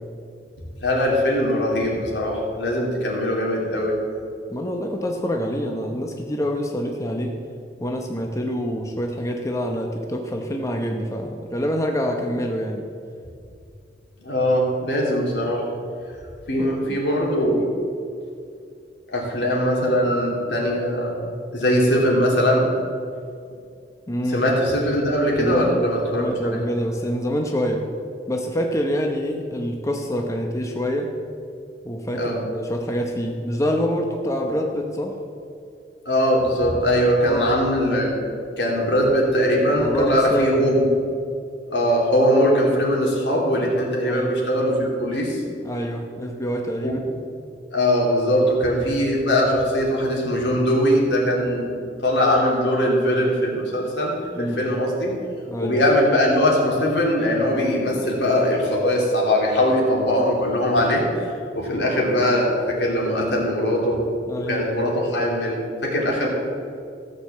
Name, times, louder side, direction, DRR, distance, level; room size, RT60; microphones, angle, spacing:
voice 1, 0.8-3.9 14.2-15.7 16.5-17.7 19.1-22.7 24.3-26.6 32.1-32.4 36.0-38.1 38.6-40.9 41.7-45.4 46.8-46.9 47.7-51.7 52.0-55.1 55.6-64.0 64.5-66.3, equal, 80° left, -2 dB, 3.0 m, -21 dB
voice 2, 4.5-7.3 7.8-12.8 16.5-17.0 24.1-24.4 25.3-25.8 26.1-27.9 28.3-31.1 31.8-35.1 37.3-37.5 39.8-40.5 44.1-44.3 45.6-47.2 54.4-54.7 55.5-55.8 64.3-64.7, equal, 20° left, 2 dB, 0.9 m, -26 dB
15.0 x 6.6 x 7.3 m, 2.4 s
head